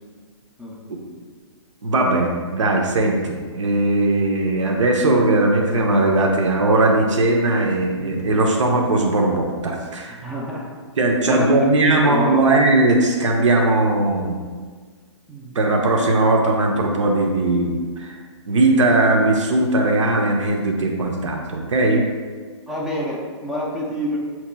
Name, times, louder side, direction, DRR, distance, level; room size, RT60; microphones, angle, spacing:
voice 1, 1.8-10.2 11.0-14.4 15.5-18.2 18.5-22.0, right 2 dB, 80° right, 1 dB, 0.7 m, -19 dB
voice 2, 8.0-8.4 10.2-10.7 11.2-11.5 11.8-12.5 15.3-15.6 22.7-24.2, equal, ahead, -4 dB, 0.4 m, -27 dB
6.9 x 2.9 x 2.2 m, 1.6 s
hypercardioid pair, 155°, 16 cm